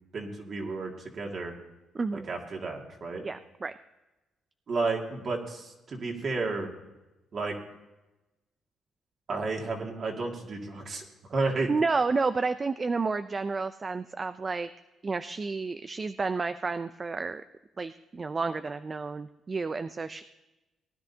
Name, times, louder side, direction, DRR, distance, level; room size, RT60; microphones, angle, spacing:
voice 1, 0.1-1.5 2.3-3.2 4.7-6.7 7.3-7.6 9.3-11.0 11.3-11.7, right 3 dB, 50° right, 1 dB, 2.2 m, -32 dB
voice 2, 1.9-2.3 3.2-3.7 11.7-14.7 15.0-17.4 17.8-20.2, right 4 dB, 30° right, 11 dB, 0.4 m, -30 dB
19.0 x 10.5 x 2.8 m, 1.0 s
cardioid pair, 90°, 0 cm